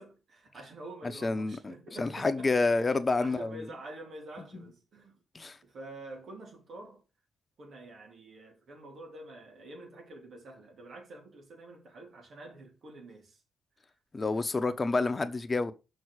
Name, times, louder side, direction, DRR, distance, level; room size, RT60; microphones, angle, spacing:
voice 1, 0.0-5.2 5.6-7.0 7.6-13.4, right 2 dB, 65° right, 3.4 m, -47 dB
voice 2, 1.2-3.6 4.5-4.7 5.3-5.6 14.1-15.7, left 3 dB, 35° left, 1.1 m, -29 dB
6.3 x 4.6 x 6.6 m
hypercardioid pair, 45°, 0 cm